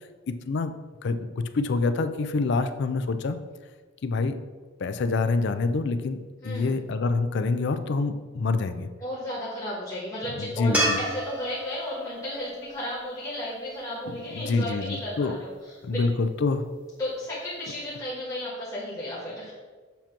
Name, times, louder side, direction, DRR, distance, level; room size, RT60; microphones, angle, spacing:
voice 1, 0.3-0.7 1.0-3.4 4.0-4.4 4.8-6.2 6.4-8.9 10.4-11.0 14.3-15.4 15.8-16.7, left 3 dB, 60° left, 10 dB, 0.4 m, -26 dB
voice 2, 6.4-6.7 9.0-16.0 17.0-19.5, left 1 dB, 15° left, -7 dB, 1.4 m, -34 dB
sound 1, 10.7-14.0 17.2-17.3, right 1 dB, 5° right, 1.1 m, -31 dB
7.1 x 2.9 x 5.8 m, 1.4 s
head